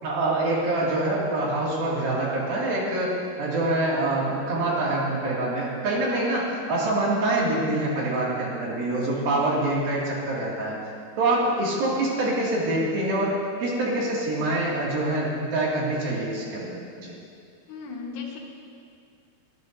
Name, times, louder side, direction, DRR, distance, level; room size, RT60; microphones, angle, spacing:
voice 1, 0.0-10.8 11.2-17.1, right 2 dB, 60° right, -5 dB, 3.9 m, -25 dB
voice 2, 17.7-18.4, left 5 dB, 80° left, -1 dB, 3.5 m, -36 dB
23.5 x 12.5 x 2.7 m, 2.3 s
omnidirectional pair, 4.8 m